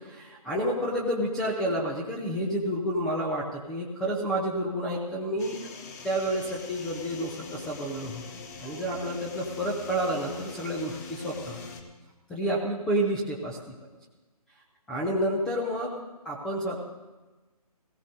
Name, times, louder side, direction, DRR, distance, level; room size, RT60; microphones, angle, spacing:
voice 1, 0.0-5.6 6.0-8.2 8.6-11.6 12.3-13.7 14.9-16.0 16.2-16.8, right 1 dB, 5° left, -3 dB, 0.4 m, -30 dB
sound 1, 5.4-11.8, left 4 dB, 25° left, 1.1 m, -42 dB
18.5 x 16.0 x 2.7 m, 1.2 s
figure-of-eight pair, 150°, 20 cm